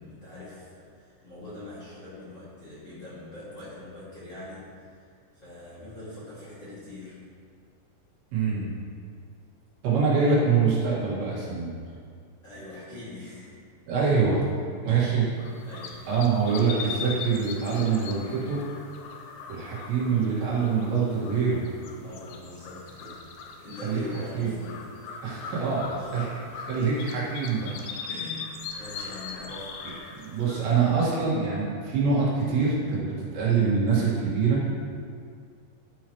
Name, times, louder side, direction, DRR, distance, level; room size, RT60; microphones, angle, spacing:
voice 1, 0.0-4.7 5.4-7.2 12.4-13.6 14.9-15.1 15.6-16.1 22.0-23.3 23.6-24.8 25.4-25.7 26.0-26.1 28.1-29.8, left 2 dB, 30° left, -10 dB, 2.4 m, -42 dB
voice 2, 8.3-8.7 9.8-11.7 13.9-14.4 14.9-15.3 16.1-18.6 19.5-21.6 23.8-24.0 24.3-24.5 25.2-27.7 28.0-28.1 30.2-34.6, right 5 dB, 75° right, -7 dB, 4.2 m, -25 dB
sound 1, 15.4-31.4, left 5 dB, 75° left, 2.4 m, -40 dB
12.5 x 9.0 x 3.2 m, 2.2 s
omnidirectional pair, 5.2 m